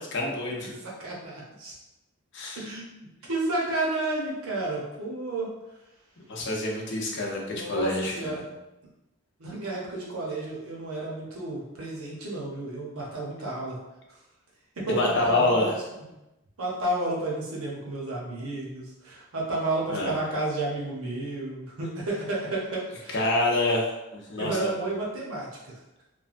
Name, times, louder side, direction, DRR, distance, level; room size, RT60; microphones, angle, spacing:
voice 1, 0.1-0.7 2.3-2.7 6.3-8.5 14.9-15.8 19.9-20.1 23.1-24.7, left 2 dB, 50° left, -1 dB, 0.6 m, -27 dB
voice 2, 0.8-1.7 2.6-5.5 7.4-8.4 9.4-13.8 14.8-15.7 15.9-16.0 16.6-23.2 24.4-25.8, right 2 dB, 75° right, -4 dB, 0.8 m, -31 dB
3.1 x 2.2 x 2.5 m, 0.97 s
head